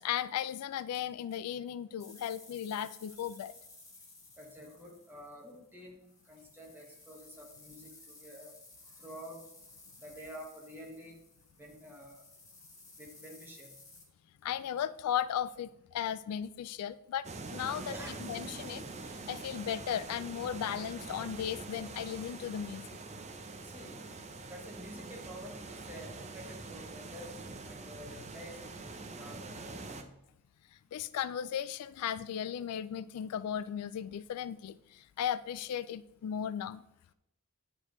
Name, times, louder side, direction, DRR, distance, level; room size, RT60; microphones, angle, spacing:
voice 1, 0.0-3.5 14.4-17.9 18.2-18.8 19.3-23.0 30.9-36.8, left 9 dB, 85° left, 16 dB, 0.3 m, -36 dB
sound 1, 2.0-14.0, left 3 dB, 15° left, 1.8 m, -56 dB
voice 2, 4.4-6.0 6.3-8.5 9.0-9.4 10.0-11.2 11.6-12.3 13.0-13.7 17.9-18.2 23.6-24.1 24.5-25.6 25.9-27.3 27.6-30.1, equal, 10° right, -1 dB, 1.5 m, -49 dB
sound 2, 17.2-30.0, right 3 dB, 30° right, 0.6 m, -44 dB
9.6 x 4.9 x 3.1 m, 0.82 s
head